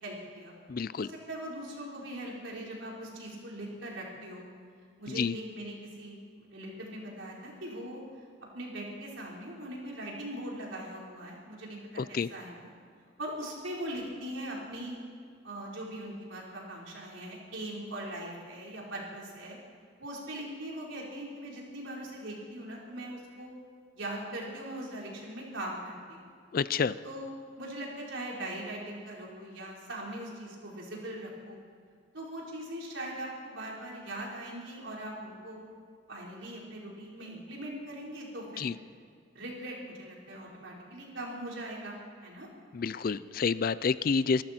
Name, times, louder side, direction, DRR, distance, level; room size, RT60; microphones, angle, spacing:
voice 1, 0.0-0.5 1.0-4.5 5.0-8.0 8.5-12.7 13.2-15.0 15.4-19.6 20.0-23.5 23.9-26.3 27.0-31.6 32.1-35.6 36.1-38.7 39.3-42.0 42.2-42.5, right 1 dB, 70° right, -3 dB, 4.1 m, -41 dB
voice 2, 0.7-1.1 5.1-5.3 12.0-12.3 26.5-27.0 38.6-38.7 42.7-44.4, left 5 dB, 45° left, 17 dB, 0.4 m, -29 dB
24.5 x 13.5 x 4.4 m, 2.2 s
head